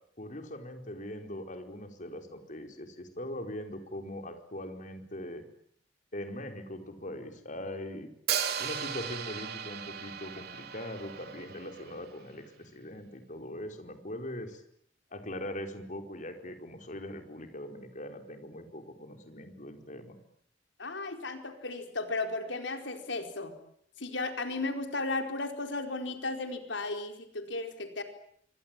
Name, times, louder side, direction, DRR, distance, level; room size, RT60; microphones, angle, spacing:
voice 1, 0.2-5.4 6.1-8.1 8.6-14.6 15.1-20.2, left 1 dB, 45° left, 6 dB, 4.7 m, -41 dB
Hi-hat, 8.3-12.2, right 8 dB, 60° right, 3.3 m, -36 dB
voice 2, 20.8-23.5 24.0-28.0, left 3 dB, 75° left, 6 dB, 4.6 m, -35 dB
27.5 x 24.0 x 9.1 m, 0.68 s
head